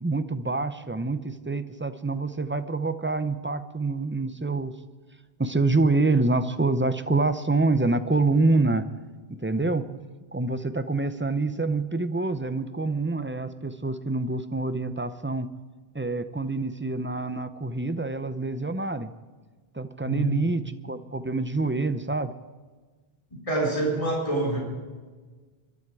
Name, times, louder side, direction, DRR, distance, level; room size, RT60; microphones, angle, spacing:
voice 1, 0.0-4.7 5.4-8.9 9.4-9.9 10.3-15.5 15.9-19.1 19.7-22.3, right 3 dB, 15° right, 11 dB, 0.6 m, -26 dB
voice 2, 20.0-20.5 23.5-24.6, right 2 dB, 30° left, -3 dB, 4.1 m, -26 dB
23.5 x 12.0 x 4.8 m, 1.4 s
omnidirectional pair, 1.1 m